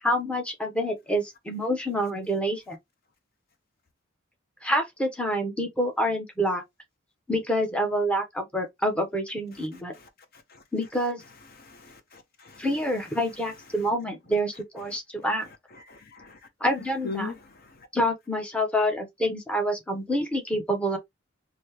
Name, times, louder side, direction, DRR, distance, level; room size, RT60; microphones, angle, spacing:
voice 1, 0.0-2.8 4.6-6.6 7.3-9.9 10.7-11.2 12.6-15.5 16.6-17.3 17.9-21.0, equal, 5° left, 0.8 m, -27 dB
voice 2, 11.6-12.7 15.9-16.4 17.0-17.4, left 4 dB, 50° left, 0.7 m, -39 dB
3.0 x 2.7 x 3.2 m
head